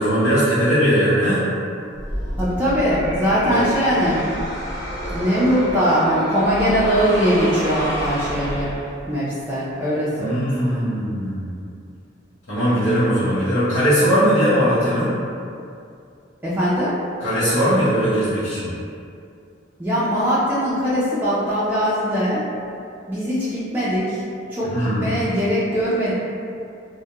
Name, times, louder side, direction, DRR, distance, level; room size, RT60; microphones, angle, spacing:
voice 1, 0.0-1.4 3.5-3.6 10.2-11.5 12.5-15.2 17.2-18.7 24.6-25.1, equal, 90° left, -15 dB, 0.8 m, -19 dB
sound 1, 1.9-9.2, equal, 10° left, 1.1 m, -29 dB
voice 2, 2.4-4.2 5.1-8.7 9.1-10.8 13.3-13.4 16.4-16.9 19.8-22.4 23.1-24.2 24.5-26.1, equal, 10° right, -11 dB, 0.3 m, -21 dB
2.3 x 2.0 x 2.8 m, 2.4 s
head